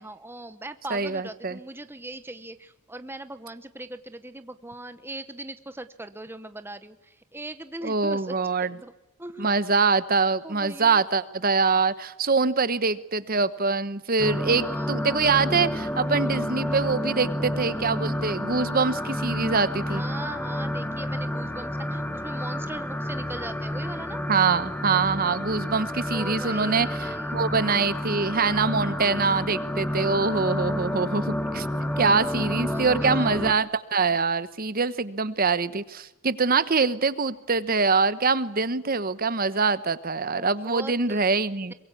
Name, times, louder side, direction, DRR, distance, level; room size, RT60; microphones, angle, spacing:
voice 1, 0.0-8.9 9.2-9.5 10.4-11.0 14.6-15.0 19.8-24.2 26.1-27.4 32.5-33.4 40.4-41.4, right 2 dB, 10° right, 11 dB, 0.9 m, -40 dB
voice 2, 0.9-1.6 7.8-8.7 9.4-20.0 24.3-31.7 32.0-41.7, right 4 dB, 40° right, 15 dB, 1.0 m, -24 dB
sound 1, 14.2-33.5, left 1 dB, 10° left, 1.7 m, -30 dB
23.5 x 23.0 x 8.4 m, 0.97 s
head